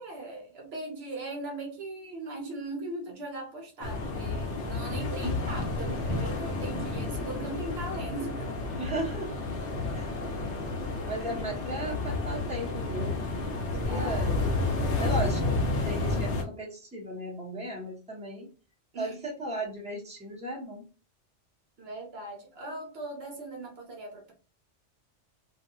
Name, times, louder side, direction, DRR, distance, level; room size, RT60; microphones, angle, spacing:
voice 1, 0.0-8.5 13.9-14.4 18.9-19.3 21.8-24.3, right 2 dB, 65° right, 0.9 m, -39 dB
sound 1, 3.8-16.4, left 3 dB, 75° left, 0.9 m, -31 dB
voice 2, 8.8-9.3 9.9-10.2 11.0-14.3 15.0-18.5 19.0-20.9, right 1 dB, 5° right, 0.9 m, -36 dB
2.6 x 2.3 x 2.7 m
omnidirectional pair, 1.2 m